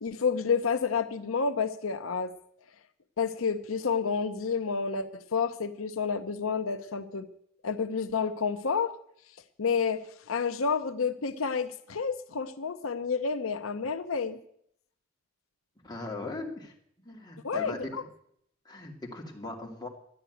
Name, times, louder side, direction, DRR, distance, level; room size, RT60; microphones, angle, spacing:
voice 1, 0.0-2.3 3.2-7.3 7.6-8.9 9.6-10.0 10.3-14.4 17.4-18.0, left 5 dB, 85° left, 9 dB, 0.7 m, -29 dB
voice 2, 15.8-16.7 17.0-18.1 18.6-19.9, left 2 dB, 20° left, 0 dB, 2.4 m, -39 dB
11.5 x 10.0 x 9.1 m, 0.70 s
head